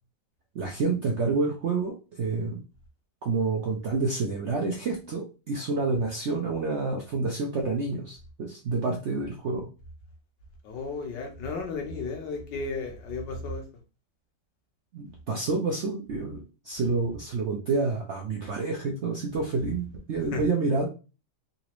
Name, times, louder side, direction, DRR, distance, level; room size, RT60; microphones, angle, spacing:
voice 1, 0.5-2.6 3.2-9.7 14.9-16.4 16.6-20.9, right 3 dB, 70° right, 1 dB, 0.6 m, -28 dB
voice 2, 10.6-13.6 20.3-20.4, left 3 dB, 75° left, 2 dB, 1.6 m, -33 dB
3.9 x 2.5 x 3.0 m, 0.32 s
omnidirectional pair, 1.9 m